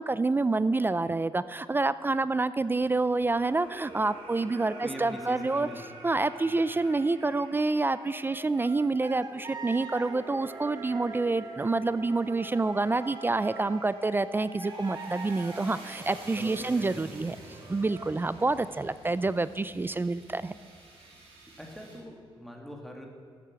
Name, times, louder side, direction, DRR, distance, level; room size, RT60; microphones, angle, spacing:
voice 1, 0.0-5.7 6.0-17.4 17.7-20.6, right 3 dB, 20° right, 15 dB, 0.4 m, -28 dB
sound 1, 2.7-22.0, right 2 dB, 85° right, 3.5 m, -48 dB
voice 2, 4.8-6.0 6.5-6.7 16.0-17.3 21.5-23.1, equal, ahead, 1 dB, 2.3 m, -43 dB
sound 2, 8.0-13.8 14.6-16.9 17.5-18.1, right 3 dB, 45° right, 1.8 m, -44 dB
13.5 x 8.5 x 8.1 m, 2.3 s
cardioid pair, 105°, 10 cm